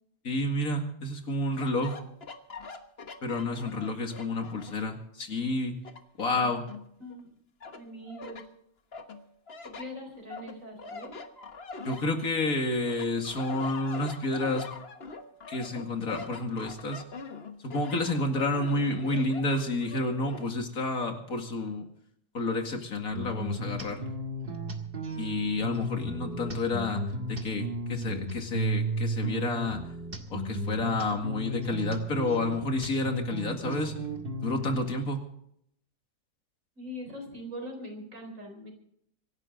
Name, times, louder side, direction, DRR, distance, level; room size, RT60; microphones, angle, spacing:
voice 1, 0.2-2.0 3.2-5.8 6.2-6.7 11.8-14.7 15.5-17.0 17.6-21.9 22.3-24.0 25.1-27.0 27.3-29.8 30.3-33.9 34.4-35.3, left 2 dB, 75° left, 4 dB, 2.6 m, -30 dB
sound 1, 1.5-5.0 5.4-7.2 7.6-8.5 8.9-12.5 12.9-20.5, left 3 dB, 45° left, 1.4 m, -44 dB
voice 2, 7.0-7.3 7.7-8.5 9.6-11.2 25.6-25.8 36.8-38.7, equal, 60° right, 3 dB, 4.6 m, -42 dB
sound 2, 23.1-34.8, right 2 dB, 40° right, 1.9 m, -34 dB
25.0 x 11.5 x 3.9 m, 0.71 s
omnidirectional pair, 1.5 m